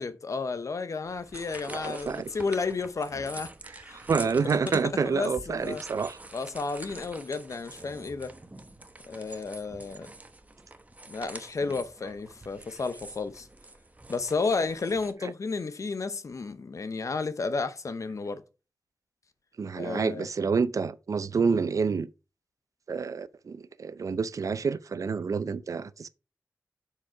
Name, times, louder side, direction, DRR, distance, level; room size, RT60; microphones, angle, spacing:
voice 1, 0.0-4.0 4.4-5.8 6.3-8.3 9.1-10.1 11.1-13.5 14.1-18.4 19.7-20.3, left 4 dB, 60° left, 0.8 m, -32 dB
sound 1, 1.0-15.1, right 2 dB, 25° right, 0.9 m, -46 dB
voice 2, 1.7-2.3 3.9-6.2 15.2-15.3 19.6-22.1 22.9-26.1, right 5 dB, 65° right, 0.5 m, -28 dB
7.2 x 4.9 x 4.6 m
cardioid pair, 65°, 6 cm